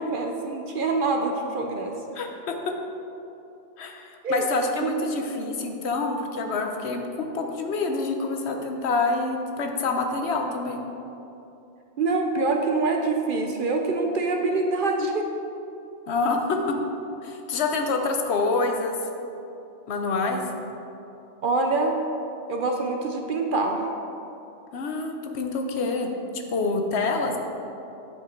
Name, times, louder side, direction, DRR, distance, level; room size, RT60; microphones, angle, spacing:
voice 1, 0.0-1.9 4.2-4.4 4.8-4.9 12.0-15.3 21.4-22.0 22.5-23.9, right 3 dB, 55° right, 3 dB, 0.7 m, -25 dB
voice 2, 2.1-2.5 3.8-10.8 16.1-16.7 17.2-18.9 19.9-20.4 24.7-27.4, left 3 dB, 70° left, 4 dB, 1.0 m, -27 dB
10.0 x 5.0 x 4.4 m, 2.8 s
omnidirectional pair, 1.2 m